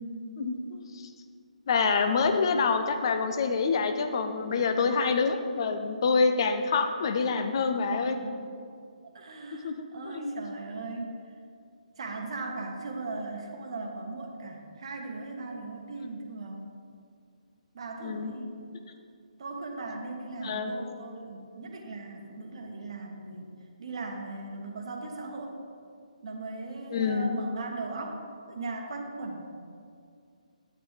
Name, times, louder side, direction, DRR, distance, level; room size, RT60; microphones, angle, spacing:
voice 1, 0.4-0.8 1.7-8.2 9.6-9.7 10.1-10.3 18.0-18.3 20.4-20.7 26.9-27.4, left 4 dB, 35° left, 7 dB, 0.6 m, -26 dB
voice 2, 7.8-8.4 9.1-11.2 12.0-16.7 17.7-18.6 19.4-23.5 23.8-25.5 26.2-28.2 28.5-29.5, right 3 dB, 45° right, 2 dB, 1.1 m, -38 dB
8.8 x 8.7 x 3.2 m, 2.3 s
figure-of-eight pair, 140°, 4 cm